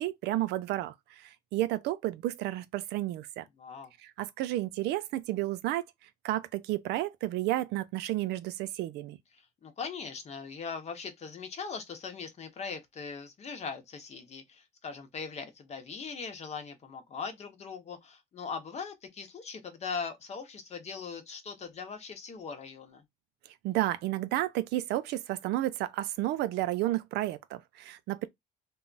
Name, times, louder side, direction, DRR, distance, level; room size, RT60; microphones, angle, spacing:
voice 1, 0.0-3.5 4.0-5.8 6.2-9.2 23.6-28.3, right 15 dB, 80° right, 0.4 m, -32 dB
voice 2, 3.6-3.9 9.3-23.0, left 5 dB, 40° left, 0.8 m, -40 dB
2.3 x 2.0 x 3.8 m
cardioid pair, 110°, 17 cm